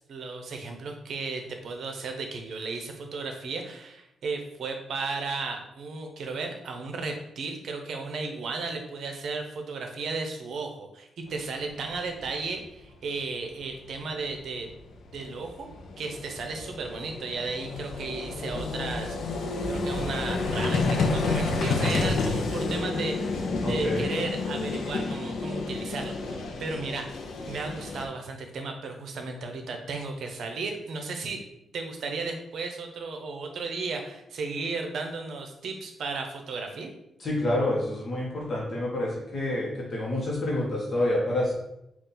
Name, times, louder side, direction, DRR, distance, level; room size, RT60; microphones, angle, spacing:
voice 1, 0.0-14.7 15.1-15.7 16.0-19.2 19.4-27.1 27.5-31.4 31.7-36.9, right 4 dB, 65° right, 4 dB, 0.6 m, -34 dB
Vehicle, 11.9-12.0 12.2-12.4 14.4-14.5 14.7-28.1, left 3 dB, 75° left, 0.5 m, -30 dB
voice 2, 23.6-24.1 37.2-41.5, left 1 dB, 40° left, -4 dB, 0.9 m, -28 dB
4.0 x 2.4 x 3.8 m, 0.83 s
cardioid pair, 130°, 0 cm